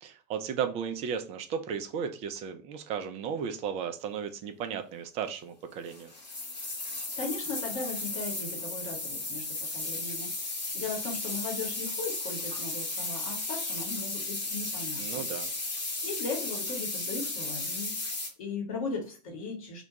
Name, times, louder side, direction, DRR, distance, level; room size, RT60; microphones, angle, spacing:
voice 1, 0.0-6.1 15.0-15.5, right 7 dB, 30° right, 7 dB, 0.4 m, -35 dB
sound 1, 5.9-18.3, left 2 dB, 80° left, 0.8 m, -35 dB
voice 2, 7.2-10.3 10.7-15.2 16.0-18.0 18.4-19.8, left 3 dB, 55° left, 2 dB, 1.0 m, -37 dB
2.2 x 2.2 x 2.7 m, 0.38 s
figure-of-eight pair, 85°, 21 cm